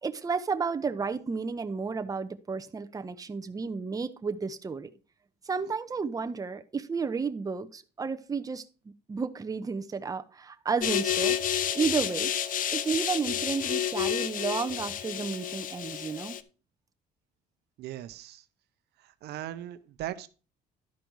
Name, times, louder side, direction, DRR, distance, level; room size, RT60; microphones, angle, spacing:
voice 1, 0.0-4.9 5.4-8.6 9.1-11.4 11.7-12.3 12.7-16.4, right 5 dB, 20° right, 0.8 m, -32 dB
sound 1, 10.8-16.4, left 9 dB, 55° left, 0.8 m, -30 dB
voice 2, 17.8-18.4 19.0-20.3, right 13 dB, 75° right, 0.8 m, -39 dB
12.0 x 5.1 x 4.6 m
cardioid pair, 110°, 17 cm